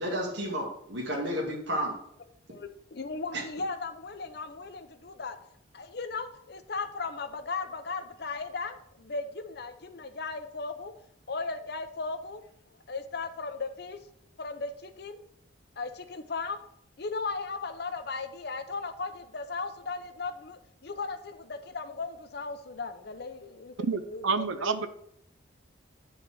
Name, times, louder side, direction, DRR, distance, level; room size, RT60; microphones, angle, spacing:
voice 1, 0.0-1.9 3.3-3.4, equal, 60° right, 2.0 m, -31 dB
voice 2, 2.5-5.4 5.7-10.9 11.3-12.4 12.9-14.0 14.4-15.2 15.8-16.6 17.0-24.8, left 4 dB, 50° left, 0.7 m, -37 dB
voice 3, 23.8-24.9, right 4 dB, 80° right, 0.7 m, -29 dB
8.7 x 4.1 x 6.1 m
head